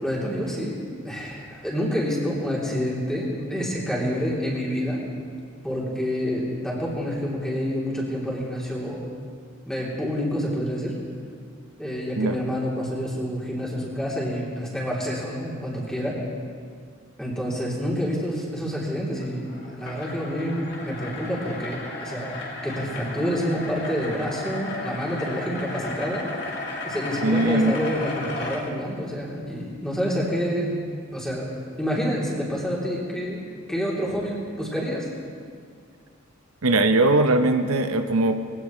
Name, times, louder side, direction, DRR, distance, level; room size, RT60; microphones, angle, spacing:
voice 1, 0.0-5.0 5.6-9.1 9.7-11.0 11.8-16.2 17.2-22.3 22.6-26.3 26.8-30.8 31.1-31.5 31.8-33.4 33.7-35.1, equal, 5° left, -6 dB, 3.1 m, -28 dB
sound 1, 19.1-28.6, left 2 dB, 55° left, 2.5 m, -34 dB
voice 2, 27.2-27.8 36.6-38.3, right 2 dB, 90° right, 7 dB, 0.8 m, -20 dB
21.5 x 17.0 x 3.2 m, 2.2 s
head